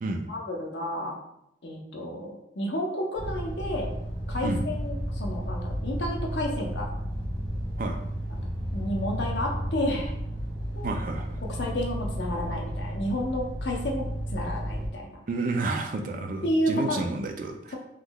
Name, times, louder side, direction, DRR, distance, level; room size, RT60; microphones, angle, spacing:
voice 1, 0.3-1.1 1.6-3.9 4.3-6.9 8.3-8.5 8.7-10.1 10.8-10.9 11.6-15.2 16.4-17.0, left 1 dB, 70° left, 0 dB, 0.7 m, -31 dB
sound 1, 3.2-14.9, equal, 80° right, 1.2 m, -33 dB
voice 2, 10.8-11.4 15.3-17.8, right 3 dB, 45° right, 4 dB, 0.4 m, -30 dB
3.6 x 3.0 x 2.2 m, 0.80 s
head